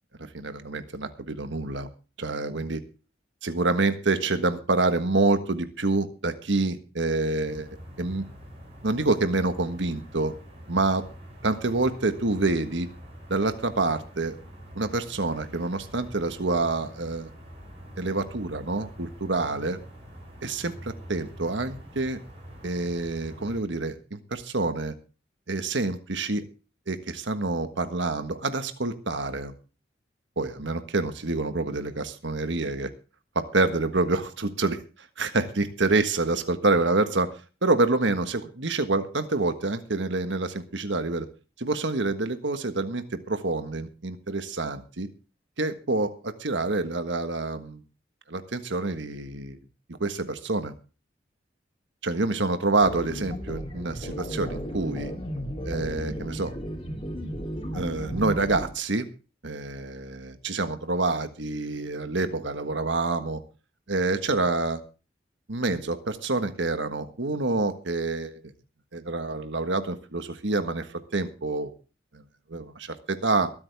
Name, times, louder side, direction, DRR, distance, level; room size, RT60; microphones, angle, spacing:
voice 1, 0.2-1.9 2.2-2.8 3.4-8.2 8.8-10.3 10.7-11.0 11.4-12.9 13.3-14.4 14.7-17.3 18.0-19.8 20.4-22.2 22.6-24.9 25.5-26.4 26.9-29.5 30.4-32.9 33.3-37.3 37.6-41.3 41.6-45.1 45.6-47.8 48.3-49.6 49.9-50.7 52.0-55.1 55.6-56.5 57.7-59.1 59.4-63.4 63.9-64.8 65.5-68.4 68.9-71.7 72.1-72.2 72.5-73.5, right 3 dB, 85° right, 9 dB, 1.5 m, -27 dB
sound 1, 7.4-23.6, equal, 35° right, 6.7 m, -45 dB
sound 2, 52.8-58.7, equal, 30° left, 3.2 m, -34 dB
23.5 x 8.8 x 3.5 m, 0.34 s
head